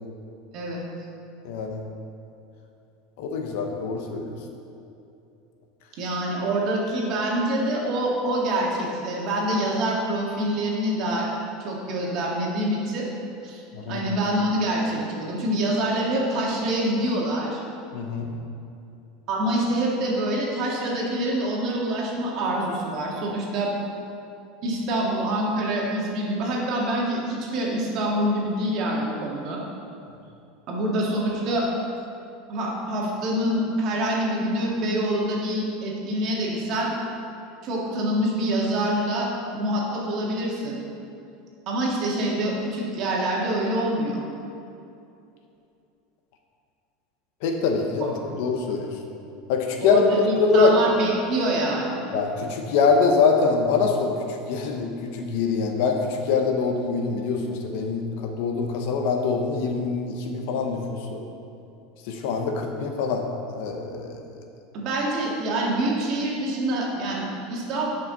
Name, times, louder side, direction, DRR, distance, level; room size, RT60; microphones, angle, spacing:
voice 1, 1.4-1.8 3.2-4.4 13.7-14.0 17.9-18.3 47.4-48.9 49.5-50.0 50.3-50.7 52.1-54.1 54.5-61.2 62.1-63.2 63.5-64.2, left 5 dB, 65° left, 3 dB, 1.0 m, -24 dB
voice 2, 5.9-11.3 11.6-13.1 13.4-17.6 19.3-23.7 24.6-29.6 30.7-31.7 32.5-36.9 37.6-39.3 39.5-40.8 41.7-44.2 48.0-48.1 49.8-52.0 64.7-67.9, right 1 dB, 45° right, -3 dB, 1.9 m, -26 dB
10.5 x 5.7 x 4.0 m, 2.7 s
supercardioid pair, 145°, 0 cm